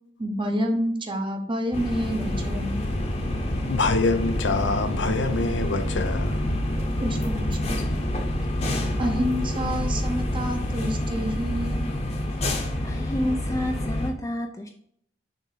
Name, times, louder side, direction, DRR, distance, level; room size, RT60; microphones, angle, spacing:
voice 1, 0.2-2.8 7.0-7.8 9.0-11.8, equal, 25° right, 0.9 m, -28 dB
sound 1, 1.7-14.1, left 1 dB, 35° left, 1.1 m, -27 dB
voice 2, 3.7-6.4, left 3 dB, 70° left, 0.7 m, -25 dB
Bowed string instrument, 4.6-7.9, right 1 dB, 70° right, 1.7 m, -43 dB
voice 3, 12.8-14.7, left 1 dB, 20° left, 0.5 m, -29 dB
6.7 x 3.5 x 5.0 m
head